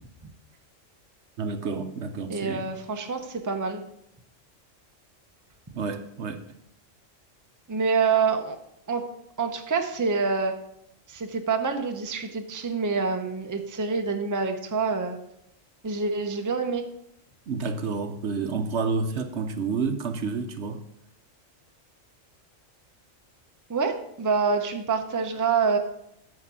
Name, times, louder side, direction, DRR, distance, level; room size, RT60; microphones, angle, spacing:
voice 1, 1.4-2.7 5.7-6.4 17.5-20.8, right 4 dB, 60° right, 1.0 m, -29 dB
voice 2, 2.3-3.8 7.7-8.6 8.9-9.0 9.4-10.5 11.1-15.2 15.8-16.8 23.7-25.8, right 5 dB, 20° right, 0.7 m, -26 dB
9.6 x 5.0 x 7.4 m
omnidirectional pair, 1.3 m